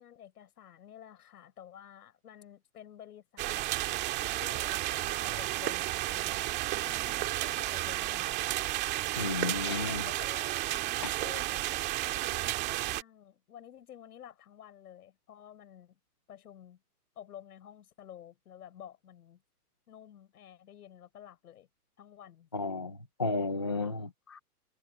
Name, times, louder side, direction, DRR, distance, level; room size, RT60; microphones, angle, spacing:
voice 1, 0.0-6.4 6.7-8.4 9.7-16.0 16.3-16.8 17.2-19.4 19.9-21.7 22.0-22.5, left 10 dB, 75° left, 7.1 m, -51 dB
sound 1, 3.4-13.0, right 17 dB, 20° right, 1.9 m, -32 dB
voice 2, 9.2-10.0 22.5-24.4, left 3 dB, 20° left, 0.3 m, -33 dB
hypercardioid pair, 165°, 46 cm